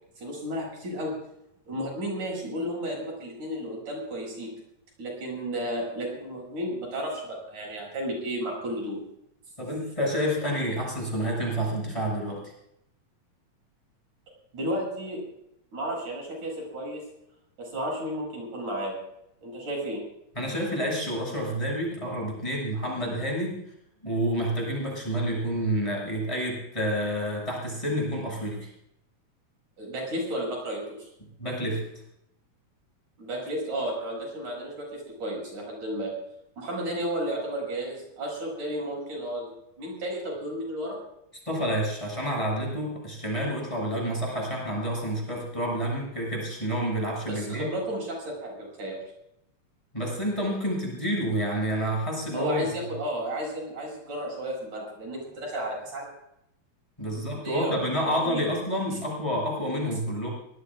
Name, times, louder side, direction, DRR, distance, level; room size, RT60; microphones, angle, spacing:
voice 1, 0.2-1.1 1.7-4.5 5.0-9.0 14.5-15.2 15.7-17.0 17.6-18.9 19.4-20.0 29.8-31.1 33.2-36.1 36.6-39.5 39.8-41.0 47.3-49.0 52.3-56.1 57.1-58.4, right 1 dB, 80° right, -1 dB, 8.8 m, -33 dB
voice 2, 9.6-12.5 20.4-23.6 24.0-28.7 31.4-31.9 41.5-47.7 49.9-52.7 57.0-60.3, equal, 10° left, -2 dB, 6.8 m, -29 dB
24.5 x 19.5 x 2.5 m, 0.77 s
omnidirectional pair, 3.4 m